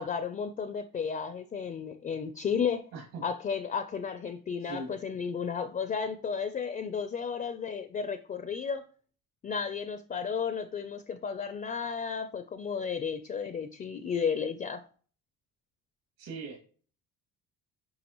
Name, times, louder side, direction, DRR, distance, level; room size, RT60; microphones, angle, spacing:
voice 1, 0.0-2.8 3.2-8.8 9.4-14.8, left 6 dB, 25° left, 0.4 m, -33 dB
voice 2, 2.9-3.2 4.6-5.0 16.2-16.6, right 3 dB, 75° right, 2.4 m, -40 dB
9.4 x 5.2 x 3.0 m
cardioid pair, 140°, 36 cm